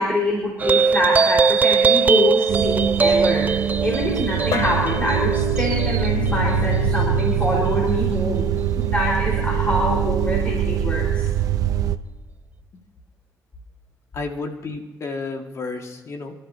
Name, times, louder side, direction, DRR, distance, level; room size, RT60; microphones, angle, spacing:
voice 1, 0.0-8.4 8.8-11.3, left 1 dB, 20° left, -3 dB, 4.5 m, -25 dB
sound 1, 0.6-7.4, right 5 dB, 25° right, 0.4 m, -21 dB
sound 2, 2.5-12.0, right 10 dB, 70° right, 0.7 m, -23 dB
sound 3, 4.5-11.2, left 3 dB, 80° left, 2.5 m, -30 dB
voice 2, 14.1-16.3, left 3 dB, 50° left, 3 dB, 1.9 m, -31 dB
29.0 x 13.0 x 2.8 m, 1.1 s
cardioid pair, 95°, 6 cm